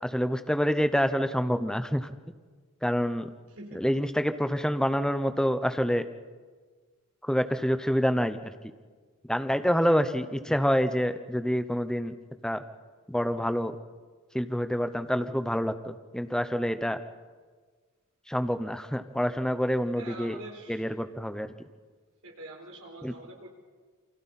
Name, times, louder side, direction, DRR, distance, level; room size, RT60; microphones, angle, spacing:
voice 1, 0.0-2.1 2.8-3.3 3.7-6.0 7.3-8.5 9.3-12.2 12.4-12.6 13.1-13.7 14.3-17.0 18.3-20.4 20.7-21.5 23.0-23.1, equal, 5° left, 9 dB, 0.8 m, -27 dB
voice 2, 3.5-3.8 20.0-20.8 22.2-23.5, right 2 dB, 75° right, 1 dB, 4.3 m, -45 dB
29.0 x 24.0 x 4.3 m, 1.5 s
head